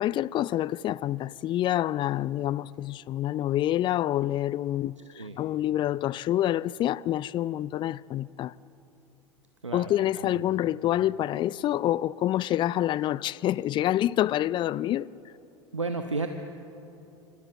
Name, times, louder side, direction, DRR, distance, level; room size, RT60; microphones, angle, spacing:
voice 1, 0.0-8.5 9.7-15.1, left 13 dB, 30° left, 0.5 m, -27 dB
voice 2, 9.6-10.5 15.7-16.3, right 3 dB, 85° right, 1.1 m, -33 dB
29.0 x 25.5 x 7.7 m
figure-of-eight pair, 80°, 15 cm